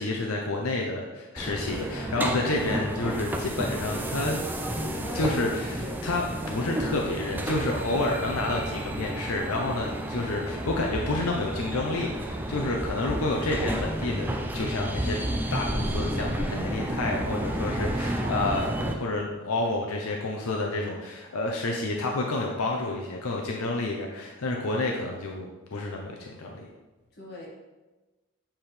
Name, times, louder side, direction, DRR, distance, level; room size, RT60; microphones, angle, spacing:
voice 1, 0.0-15.2 15.5-26.7, left 2 dB, 85° left, 0 dB, 0.7 m, -30 dB
sound 1, 1.4-18.9, right 1 dB, 10° right, 0.3 m, -31 dB
voice 2, 1.9-2.2 5.0-6.1 7.9-8.1 18.2-18.5 27.1-27.5, left 2 dB, 45° left, -5 dB, 1.8 m, -39 dB
7.7 x 4.4 x 3.3 m, 1.1 s
head